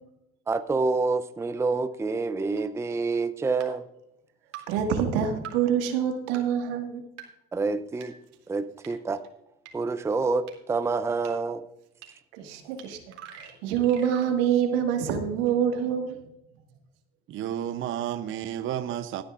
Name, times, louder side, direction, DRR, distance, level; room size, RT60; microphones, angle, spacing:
voice 1, 0.5-3.9 7.5-8.1 8.5-9.2 9.7-11.6, right 4 dB, 10° right, 12 dB, 0.5 m, -27 dB
sound 1, 2.6-2.7 3.6-3.7 4.5-4.6 5.4-5.5 6.3-6.4 7.2-7.3 8.0-8.1 8.8-8.9 9.7-9.8 10.5-10.6 11.2-11.3 12.0-12.1 12.8-12.9 13.1-14.3, right 10 dB, 60° right, 2.7 m, -43 dB
voice 2, 4.7-7.0 12.3-13.0 13.4-16.2, right 8 dB, 80° right, 5 dB, 1.8 m, -26 dB
voice 3, 17.3-19.2, right 10 dB, 45° right, 10 dB, 0.7 m, -31 dB
18.0 x 9.6 x 2.5 m, 0.84 s
supercardioid pair, 90°, 29 cm